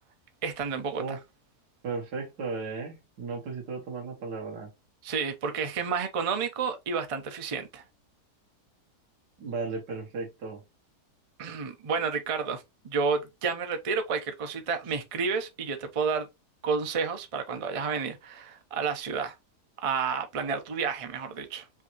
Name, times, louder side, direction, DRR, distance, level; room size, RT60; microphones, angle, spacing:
voice 1, 0.4-1.2 5.0-7.8 11.4-16.3 16.6-19.4 19.8-21.7, right 5 dB, 40° right, 0.4 m, -30 dB
voice 2, 1.8-4.7 9.4-10.6, right 4 dB, 80° right, 2.0 m, -35 dB
5.5 x 2.7 x 2.9 m
omnidirectional pair, 1.8 m